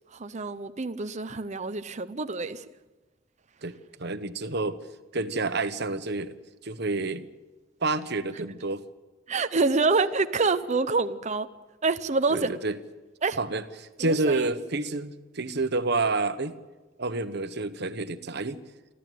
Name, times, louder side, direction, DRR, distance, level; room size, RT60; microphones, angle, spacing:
voice 1, 0.1-2.6 9.3-11.5 11.8-12.5 13.2-13.4 14.0-14.5, right 3 dB, 35° right, 9 dB, 0.8 m, -26 dB
voice 2, 3.6-4.8 5.1-6.4 6.6-7.3 7.8-8.8 12.3-12.8 13.4-16.5 17.0-18.6, right 3 dB, 60° right, 10 dB, 1.3 m, -29 dB
28.0 x 13.0 x 9.4 m, 1.2 s
head